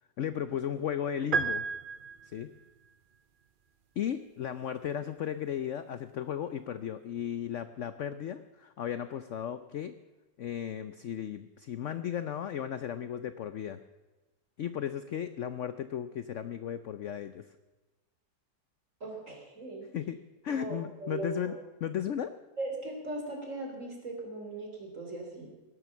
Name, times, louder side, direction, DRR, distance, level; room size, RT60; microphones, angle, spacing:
voice 1, 0.2-1.7 2.3-2.5 4.0-9.9 10.4-13.8 14.6-17.5 19.9-22.3, left 9 dB, 65° left, 12 dB, 0.7 m, -35 dB
sound 1, 1.3-2.6, right 5 dB, 70° right, 0.5 m, -32 dB
voice 2, 19.0-19.9 20.6-21.5 22.6-25.5, right 2 dB, 45° right, 0 dB, 3.9 m, -39 dB
18.0 x 11.0 x 7.1 m, 1.2 s
omnidirectional pair, 1.9 m